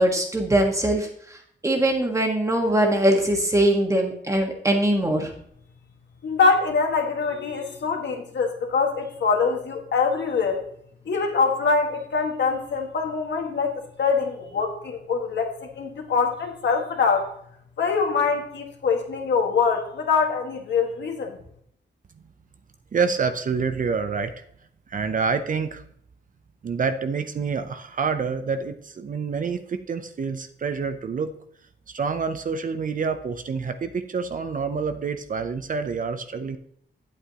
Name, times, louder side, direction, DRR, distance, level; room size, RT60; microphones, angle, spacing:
voice 1, 0.0-5.3, right 1 dB, 15° right, 1 dB, 1.5 m, -22 dB
voice 2, 6.2-10.6 11.0-17.3 17.8-21.4, left 5 dB, 70° left, 1 dB, 1.7 m, -24 dB
voice 3, 22.9-24.3 24.9-25.8 26.6-31.3 31.9-36.6, right 5 dB, 45° right, 9 dB, 0.5 m, -27 dB
9.7 x 8.4 x 2.9 m, 0.69 s
wide cardioid pair, 160°, 19 cm